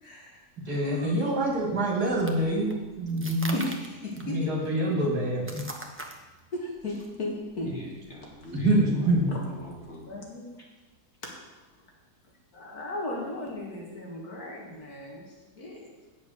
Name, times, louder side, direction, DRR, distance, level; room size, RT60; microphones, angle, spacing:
voice 1, 0.0-1.2 1.5-1.6 3.5-4.5 6.5-7.7 10.1-10.5 11.2-11.3 12.5-15.9, left 2 dB, 55° left, -1 dB, 2.2 m, -36 dB
voice 2, 0.7-3.6 4.2-5.6 8.5-9.3, right 1 dB, 60° right, -1 dB, 2.5 m, -26 dB
sound 1, 1.5-10.0, right 1 dB, 15° right, 0.5 m, -44 dB
voice 3, 7.6-10.1, left 1 dB, 40° left, -2 dB, 2.2 m, -42 dB
8.6 x 7.3 x 6.3 m, 1.2 s
omnidirectional pair, 1.9 m